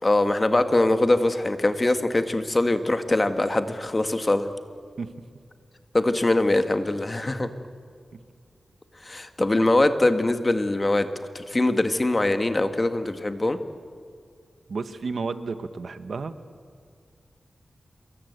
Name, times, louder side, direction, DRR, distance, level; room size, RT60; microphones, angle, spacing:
voice 1, 0.0-4.5 5.9-7.5 9.0-11.1 11.3-13.6, left 2 dB, 25° left, 9 dB, 1.7 m, -22 dB
voice 2, 14.7-16.4, right 4 dB, 65° right, 11 dB, 1.2 m, -32 dB
27.0 x 23.0 x 8.2 m, 2.1 s
wide cardioid pair, 100°, 0 cm